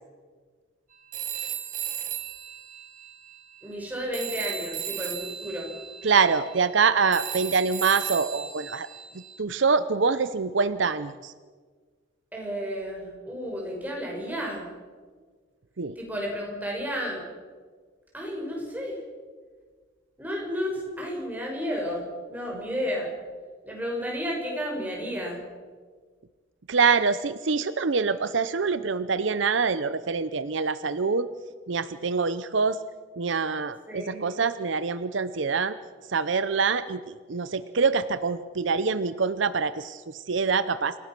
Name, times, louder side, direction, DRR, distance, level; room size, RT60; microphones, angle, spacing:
Telephone, 1.1-3.9 4.1-9.4, right 10 dB, 40° right, 1.6 m, -36 dB
voice 1, 3.6-5.7 12.3-14.7 16.0-17.2 18.1-19.0 20.2-23.1 23.6-25.4 33.9-34.3, equal, 10° right, -1 dB, 5.8 m, -32 dB
voice 2, 6.0-8.9 9.4-11.3 15.8-15.9 22.5-22.7 26.7-31.3 31.7-32.8 33.2-35.8 36.1-41.0, right 5 dB, 70° right, 14 dB, 0.7 m, -25 dB
27.5 x 17.0 x 6.1 m, 1.5 s
head